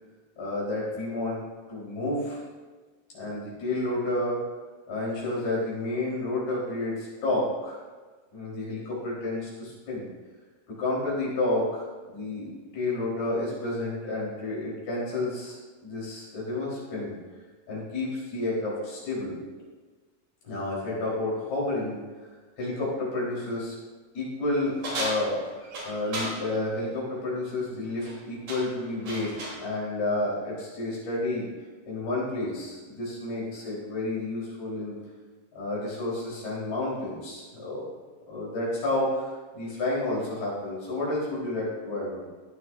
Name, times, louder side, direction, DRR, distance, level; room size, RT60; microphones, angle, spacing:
voice 1, 0.4-1.4 1.7-2.4 3.1-4.4 4.9-7.8 8.3-10.1 10.7-15.6 15.8-17.1 17.7-19.4 20.4-22.3 22.6-23.8 24.1-31.5 31.9-35.0 35.6-37.9 38.3-42.3, left 2 dB, 80° left, -6 dB, 5.8 m, -30 dB
sound 1, 24.8-26.4 27.8-28.2 28.5-29.6, right 1 dB, 55° right, 4.6 m, -34 dB
16.0 x 10.0 x 2.6 m, 1.3 s
omnidirectional pair, 4.3 m